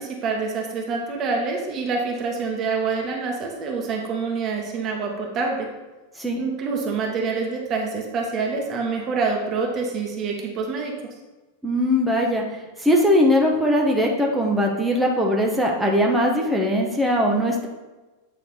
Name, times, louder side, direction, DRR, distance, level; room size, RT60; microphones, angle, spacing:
voice 1, 0.0-5.7 6.4-10.9, right 4 dB, 30° right, 0 dB, 1.2 m, -26 dB
voice 2, 11.6-12.4 12.8-17.7, equal, 5° right, -1 dB, 1.0 m, -20 dB
8.8 x 3.2 x 4.3 m, 1.1 s
figure-of-eight pair, 90°, 0 cm